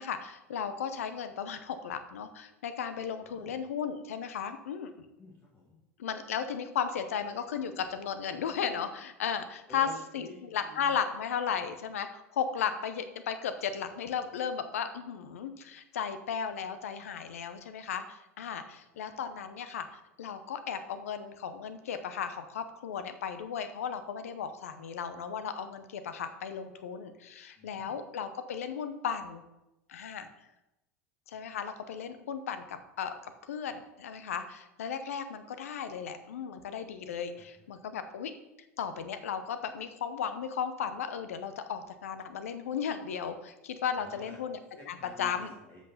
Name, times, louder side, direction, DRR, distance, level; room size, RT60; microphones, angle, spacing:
voice 1, 0.0-4.9 6.0-9.9 10.1-29.4 29.9-30.3 31.3-33.1 33.4-38.3 38.8-45.5, left 7 dB, 80° left, 10 dB, 0.7 m, -35 dB
voice 2, 3.2-3.6 5.2-5.8 9.7-10.9 27.6-28.0 31.3-31.4 37.4-37.5 43.9-44.4 44.8-45.8, left 2 dB, 30° left, -3 dB, 2.0 m, -50 dB
7.7 x 5.9 x 5.6 m, 0.93 s
hypercardioid pair, 85°, 8 cm